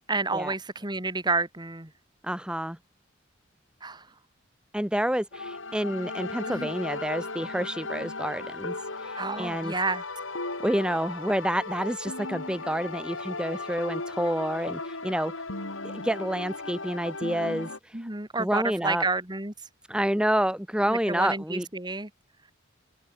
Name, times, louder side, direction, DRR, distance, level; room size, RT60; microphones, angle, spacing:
voice 1, 0.1-1.9 3.8-4.0 6.5-6.7 9.2-10.0 17.9-19.5 20.9-22.1, right 3 dB, 20° right, 2.4 m, -30 dB
voice 2, 2.2-2.8 4.7-9.7 10.6-15.3 15.8-18.1 18.3-19.0 19.9-21.7, equal, 5° right, 1.6 m, -29 dB
sound 1, 5.3-17.8, left 3 dB, 85° left, 6.4 m, -36 dB
open air
head